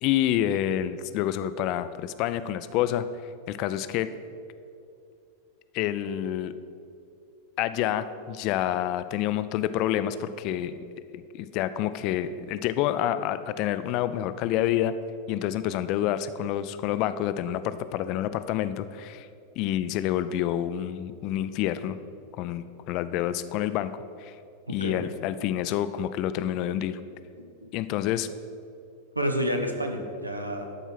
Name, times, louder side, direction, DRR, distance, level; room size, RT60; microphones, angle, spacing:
voice 1, 0.0-3.1 3.5-4.1 5.7-6.5 7.6-10.8 11.1-14.9 15.3-19.3 19.6-22.0 22.3-23.9 24.2-24.3 24.7-27.0 27.7-28.3, left 11 dB, 40° left, 13 dB, 0.4 m, -28 dB
voice 2, 24.7-25.1 27.4-27.7 29.1-30.6, equal, 85° right, 4 dB, 0.9 m, -30 dB
11.5 x 4.6 x 5.8 m, 2.5 s
figure-of-eight pair, 90°, 0 cm